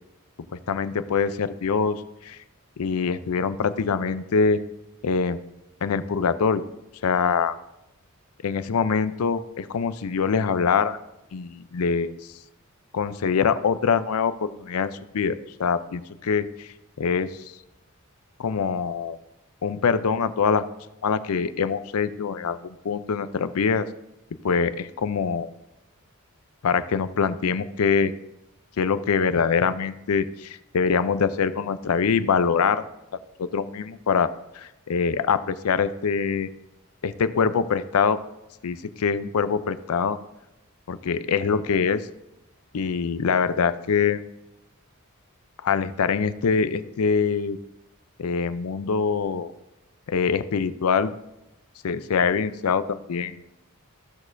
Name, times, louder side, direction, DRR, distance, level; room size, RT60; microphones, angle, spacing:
voice 1, 0.5-2.4 2.8-4.6 5.0-5.4 5.8-6.6 7.0-7.6 8.4-11.0 11.3-12.2 12.9-16.7 17.0-17.4 18.4-19.2 19.6-20.6 21.0-23.9 24.4-25.5 26.6-28.1 28.8-32.8 33.4-36.5 37.0-38.2 38.6-40.2 40.9-42.1 42.7-44.2 45.6-47.6 48.2-49.5 50.1-51.1 51.8-53.4, left 5 dB, 85° left, 13 dB, 0.5 m, -24 dB
15.0 x 6.3 x 2.6 m, 0.92 s
head